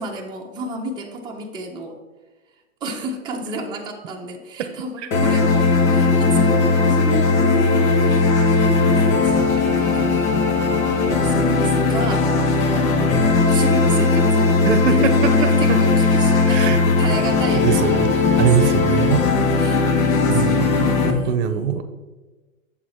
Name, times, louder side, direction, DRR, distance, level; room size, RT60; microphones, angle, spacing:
voice 1, 0.0-2.0 2.8-8.0 8.7-10.3 11.2-12.9 13.5-21.4, right 2 dB, 10° right, 0 dB, 0.5 m, -32 dB
sound 1, 5.1-21.1, left 4 dB, 75° left, 1.0 m, -18 dB
voice 2, 14.6-15.8 16.5-16.8 17.5-18.1 18.4-19.2 19.8-20.0 20.3-21.8, right 8 dB, 55° right, 9 dB, 0.6 m, -22 dB
7.1 x 2.9 x 4.7 m, 1.2 s
hypercardioid pair, 110°, 41 cm